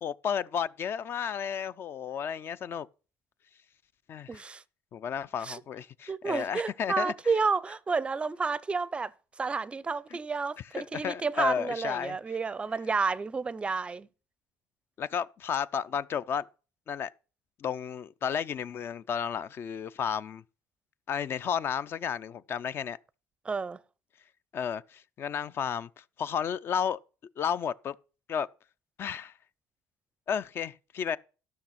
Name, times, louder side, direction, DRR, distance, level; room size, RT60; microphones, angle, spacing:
voice 1, 0.0-2.9 4.1-4.4 4.9-7.1 10.7-12.2 15.0-16.5 16.9-17.1 17.6-20.4 21.1-23.0 24.5-25.9 26.2-27.0 27.4-27.9 28.3-28.5 29.0-29.3 30.3-31.2, left 7 dB, 45° left, 0.5 m, -32 dB
voice 2, 4.3-4.6 5.4-5.6 6.1-9.1 9.4-14.1 23.4-23.8, right 4 dB, 20° right, 0.5 m, -30 dB
13.0 x 6.2 x 5.8 m
cardioid pair, 125°, 6 cm